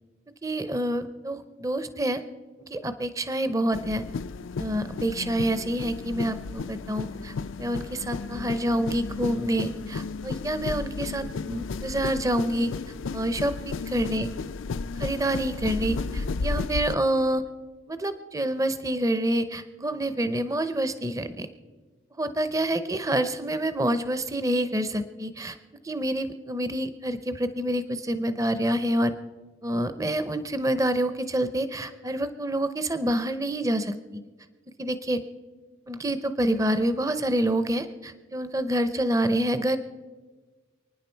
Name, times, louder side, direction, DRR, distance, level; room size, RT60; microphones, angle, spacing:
voice 1, 0.4-2.2 2.6-4.0 4.6-12.7 13.1-14.3 15.0-17.4 17.9-21.5 22.2-25.6 25.8-29.1 29.6-34.2 34.8-35.2 35.9-39.8, right 1 dB, 15° right, 11 dB, 0.6 m, -27 dB
sound 1, 3.7-16.9, left 4 dB, 80° left, 0.5 m, -33 dB
29.0 x 9.8 x 4.5 m, 1.4 s
head